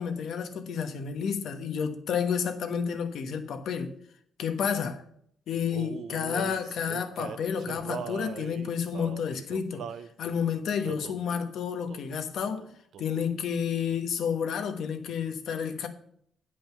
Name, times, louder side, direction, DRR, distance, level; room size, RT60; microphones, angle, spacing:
voice 1, 0.0-3.9 4.4-5.0 5.5-9.8 10.2-12.7 13.0-15.9, left 7 dB, 70° left, 1.1 m, -30 dB
Male singing, 5.7-10.1 10.8-11.3 11.9-12.2 12.4-13.4, right 7 dB, 65° right, 0.6 m, -40 dB
9.0 x 5.1 x 7.0 m
cardioid pair, 90°, 0 cm